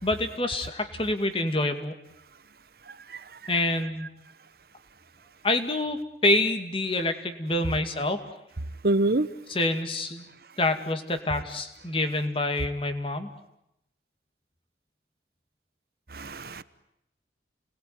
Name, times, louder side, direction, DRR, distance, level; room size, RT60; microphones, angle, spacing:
voice 1, 0.0-1.9 3.5-4.1 5.4-8.2 9.5-10.3 10.6-13.3, left 2 dB, 30° left, 7 dB, 2.3 m, -27 dB
voice 2, 8.8-9.3 16.1-16.6, right 2 dB, 55° right, 15 dB, 1.0 m, -24 dB
29.0 x 20.5 x 9.4 m, 0.84 s
head